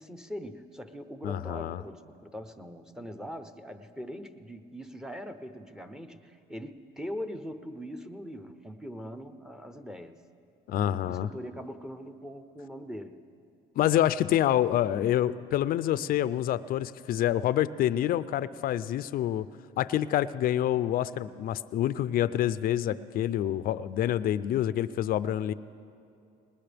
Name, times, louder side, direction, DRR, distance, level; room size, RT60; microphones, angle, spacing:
voice 1, 0.0-10.2 10.9-13.2, equal, 5° right, 9 dB, 0.8 m, -41 dB
voice 2, 1.2-1.8 10.7-11.3 13.8-19.4 19.8-25.5, left 12 dB, 60° left, 16 dB, 0.5 m, -27 dB
20.0 x 20.0 x 3.5 m, 2.5 s
cardioid pair, 110°, 17 cm